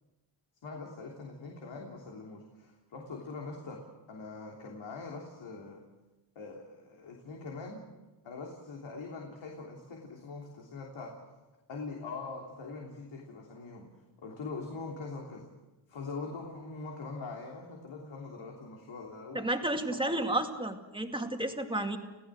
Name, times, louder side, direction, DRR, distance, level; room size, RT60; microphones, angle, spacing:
voice 1, 0.6-5.8 6.3-7.8 8.2-11.1 11.7-13.9 14.2-15.5 15.9-19.4 19.7-20.4, left 3 dB, 75° left, -1 dB, 3.4 m, -43 dB
voice 2, 19.3-22.0, right 1 dB, 10° right, 4 dB, 2.1 m, -32 dB
30.0 x 16.0 x 6.5 m, 1.1 s
cardioid pair, 105°, 46 cm